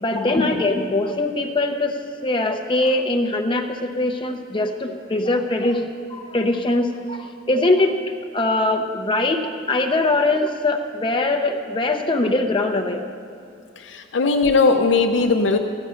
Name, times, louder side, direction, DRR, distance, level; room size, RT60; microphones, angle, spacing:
voice 1, 0.0-2.0 2.2-7.9 8.3-13.1 15.2-15.3, left 2 dB, 25° left, 5 dB, 0.6 m, -22 dB
voice 2, 13.8-15.6, left 4 dB, 75° left, 4 dB, 0.6 m, -19 dB
15.0 x 9.7 x 5.6 m, 2.3 s
head